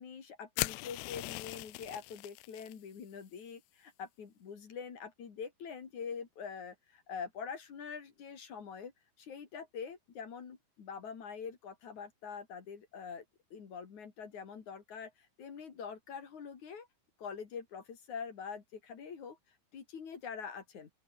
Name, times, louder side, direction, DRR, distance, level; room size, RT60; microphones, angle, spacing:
voice 1, 0.0-8.9 9.2-13.2 13.5-15.1 15.4-16.9 17.2-19.4 19.7-20.9, left 6 dB, 45° left, 3.4 m, -44 dB
sound 1, 0.6-2.7, left 25 dB, 85° left, 2.9 m, -39 dB
open air
omnidirectional pair, 6.0 m